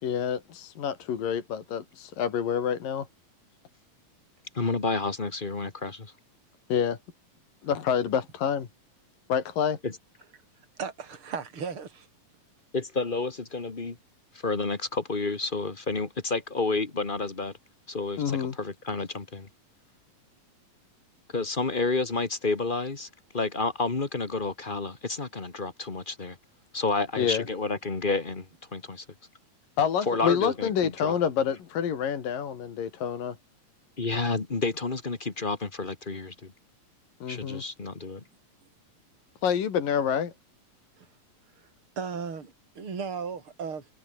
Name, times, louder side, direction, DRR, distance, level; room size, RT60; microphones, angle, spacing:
voice 1, 0.0-3.1 6.7-7.0 7.6-8.7 9.3-9.8 18.2-18.5 27.2-27.4 29.8-33.4 37.2-37.6 39.4-40.3, left 8 dB, 70° left, 4.3 m, -27 dB
voice 2, 4.5-6.1 9.8-9.9 12.7-14.0 14.3-17.5 17.9-19.5 21.3-26.4 26.7-29.0 30.0-31.1 34.0-36.5 37.3-38.2, left 3 dB, 35° left, 0.7 m, -30 dB
voice 3, 10.8-12.1 41.0-41.1 42.0-43.9, right 6 dB, 35° right, 4.9 m, -35 dB
omnidirectional pair, 4.1 m